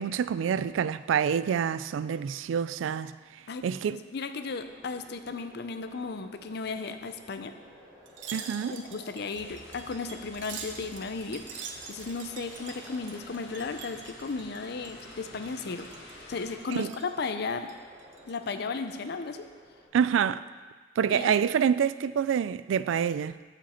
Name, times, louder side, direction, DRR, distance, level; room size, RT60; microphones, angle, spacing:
voice 1, 0.0-3.1 3.6-4.0 8.3-8.8 16.7-16.9 19.9-20.4 21.0-23.4, right 8 dB, 85° right, 0.3 m, -27 dB
voice 2, 3.9-7.5 8.7-15.9 16.3-17.7 18.3-19.5 21.1-21.4, left 4 dB, 60° left, 0.6 m, -35 dB
sound 1, 4.4-19.9, equal, 20° right, 3.2 m, -54 dB
Wind chime, 8.1-15.2 15.4-16.2 16.6-17.1 17.6-18.5 18.9-19.1, right 6 dB, 70° right, 0.8 m, -45 dB
sound 2, 9.3-16.6, left 2 dB, 85° left, 1.8 m, -49 dB
14.0 x 5.1 x 4.3 m
head